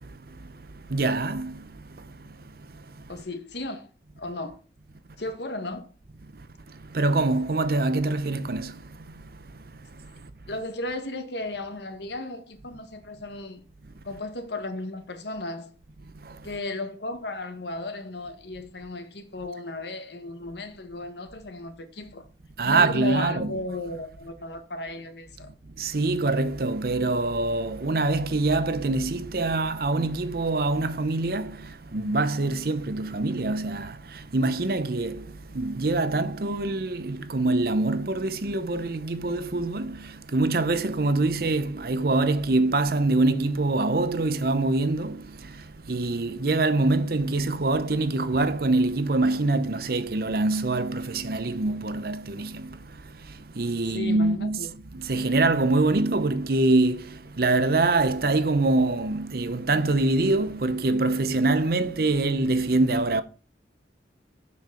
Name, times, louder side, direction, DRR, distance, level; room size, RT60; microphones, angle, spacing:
voice 1, 0.0-3.0 6.3-10.3 16.1-16.5 22.6-23.6 25.8-54.7 54.9-63.2, right 2 dB, 55° right, 0.7 m, -25 dB
voice 2, 3.1-3.9 4.2-4.6 5.2-5.9 10.5-13.6 14.0-15.7 16.4-22.2 22.6-25.5 53.9-54.7, left 2 dB, 75° left, 1.5 m, -35 dB
7.4 x 6.2 x 5.7 m
head